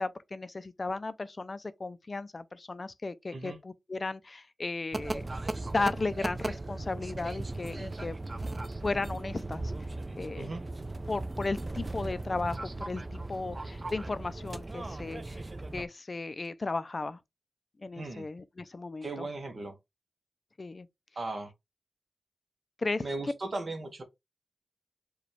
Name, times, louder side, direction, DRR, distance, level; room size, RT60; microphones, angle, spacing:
voice 1, 0.0-5.2 5.7-8.2 8.8-9.6 10.2-10.5 11.1-15.4 15.7-17.2 17.8-19.3 20.6-20.9 22.8-23.0, left 3 dB, 45° left, 0.4 m, -35 dB
sound 1, 4.9-15.8, right 2 dB, 35° right, 0.4 m, -37 dB
voice 2, 19.0-19.8 21.2-21.5 23.0-24.0, right 2 dB, 55° right, 0.8 m, -37 dB
4.9 x 2.3 x 3.2 m
wide cardioid pair, 75°, 0 cm